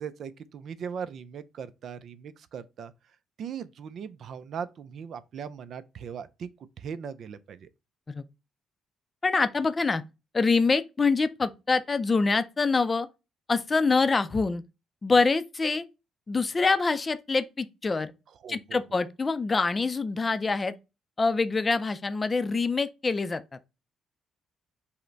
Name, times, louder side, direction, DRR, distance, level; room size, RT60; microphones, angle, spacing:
voice 1, 0.0-2.9 3.4-6.5 6.8-7.7 18.4-18.8, right 7 dB, 65° right, 0.4 m, -39 dB
voice 2, 9.2-10.0 10.3-13.1 13.5-14.6 15.0-15.8 16.3-18.1 18.5-20.7 21.2-23.4, left 4 dB, 30° left, 0.4 m, -25 dB
5.5 x 2.1 x 3.9 m
cardioid pair, 90°, 0 cm